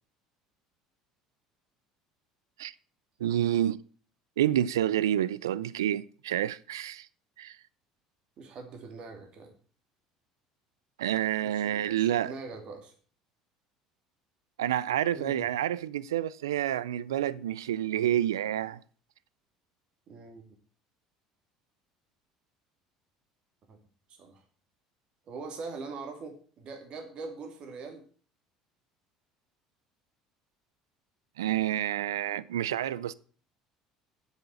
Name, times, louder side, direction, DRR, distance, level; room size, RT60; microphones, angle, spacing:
voice 1, 3.2-3.8 4.4-7.1 7.4-7.6 11.0-12.3 14.6-18.8 31.4-33.1, right 11 dB, 85° right, 0.4 m, -28 dB
voice 2, 8.4-9.5 11.4-12.9 15.1-15.5 20.1-20.4 23.7-23.8 24.1-24.4 25.3-28.0, right 4 dB, 50° right, 2.7 m, -42 dB
7.9 x 7.1 x 7.7 m
hypercardioid pair, 70°, 2 cm